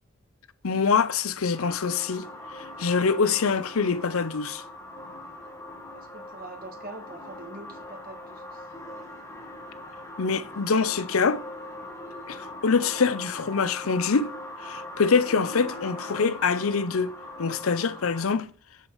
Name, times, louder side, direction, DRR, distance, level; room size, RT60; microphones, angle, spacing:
voice 1, 0.6-2.3 2.5-4.6 10.2-11.4 12.3-14.3 14.6-18.5, left 5 dB, 75° left, 0.6 m, -25 dB
sound 1, 1.5-18.3, left 1 dB, 15° left, 1.5 m, -41 dB
voice 2, 5.9-8.7, right 2 dB, 40° right, 1.7 m, -44 dB
7.4 x 7.1 x 5.5 m
head